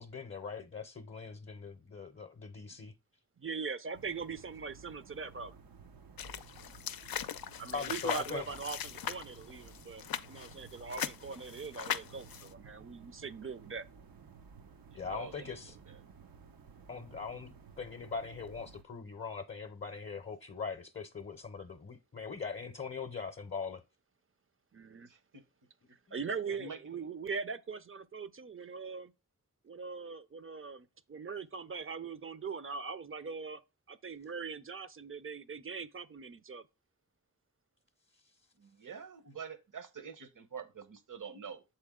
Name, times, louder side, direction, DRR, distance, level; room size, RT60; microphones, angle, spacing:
voice 1, 0.0-2.9 7.7-8.5 14.9-15.7 16.9-23.8, left 5 dB, 35° left, 0.7 m, -41 dB
voice 2, 3.4-5.6 7.6-13.9 24.7-25.1 26.1-29.1 29.6-33.6 33.9-36.6, right 5 dB, 40° right, 0.6 m, -41 dB
sound 1, 3.9-18.8, right 5 dB, 85° right, 0.8 m, -55 dB
sound 2, 6.2-12.5, left 9 dB, 80° left, 0.5 m, -40 dB
voice 3, 14.9-16.0 25.1-25.4 26.4-26.8 38.6-41.6, right 6 dB, 60° right, 1.0 m, -47 dB
6.9 x 4.4 x 3.7 m
cardioid pair, 55°, 34 cm